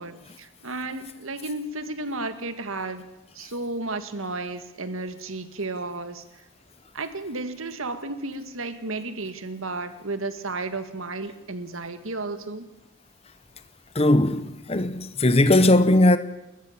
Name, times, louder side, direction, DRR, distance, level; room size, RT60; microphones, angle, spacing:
voice 1, 0.0-3.1 3.4-6.2 6.9-12.7, right 2 dB, 80° right, 1.8 m, -33 dB
voice 2, 13.9-16.2, left 1 dB, 30° left, 0.9 m, -18 dB
29.5 x 14.0 x 7.4 m
head